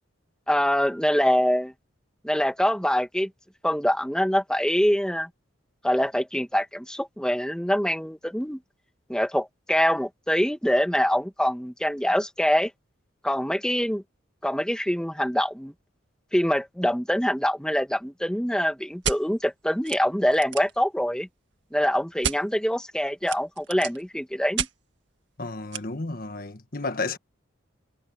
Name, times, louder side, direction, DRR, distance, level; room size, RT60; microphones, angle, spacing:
voice 1, 0.5-1.7 2.2-3.3 3.6-5.3 5.8-8.6 9.1-12.7 13.2-14.0 14.4-15.7 16.3-21.3 21.7-24.7, equal, 5° left, 2.0 m, -24 dB
sound 1, 19.0-19.2 19.8-20.0 20.3-20.8 22.2-22.4 23.2-24.0 24.6-24.7 25.7-25.8, right 7 dB, 65° right, 2.1 m, -29 dB
voice 2, 25.4-27.2, left 3 dB, 45° left, 1.6 m, -32 dB
head